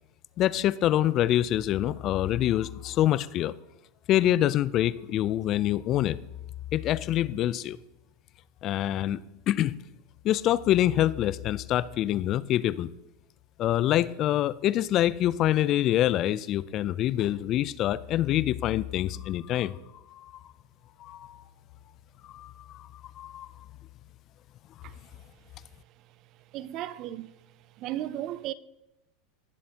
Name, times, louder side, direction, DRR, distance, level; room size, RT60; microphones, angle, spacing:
voice 1, 0.4-3.5 4.1-6.2 6.7-7.8 8.6-9.2 9.5-9.7 10.2-12.9 13.6-19.7 20.1-20.3 21.0-21.4 22.3-22.8 23.2-23.5, left 13 dB, 45° left, 0.4 m, -25 dB
voice 2, 26.5-27.3 27.8-28.5, right 13 dB, 50° right, 0.5 m, -35 dB
17.5 x 7.6 x 2.9 m
hypercardioid pair, 105°, 0 cm